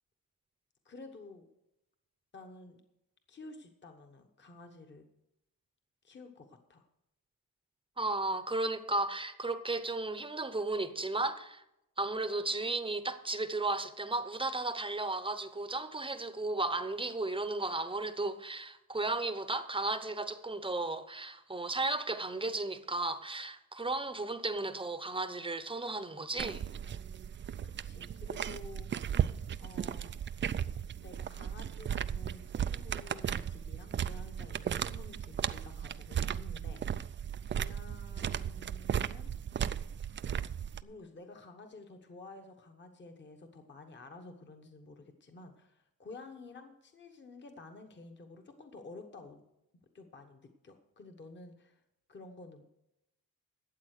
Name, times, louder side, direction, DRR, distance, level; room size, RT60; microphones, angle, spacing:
voice 1, 0.8-1.5 2.3-2.8 3.3-5.0 6.0-6.9 27.6-29.1 29.6-30.1 31.0-37.1 37.5-39.3 40.8-49.4 49.9-51.8 52.1-52.6, left 3 dB, 30° left, 1.2 m, -51 dB
voice 2, 8.0-11.6 12.0-26.6, right 2 dB, 15° right, 0.8 m, -34 dB
sound 1, 26.4-40.8, right 9 dB, 35° right, 0.4 m, -36 dB
12.5 x 8.4 x 6.5 m
cardioid pair, 135°, 36 cm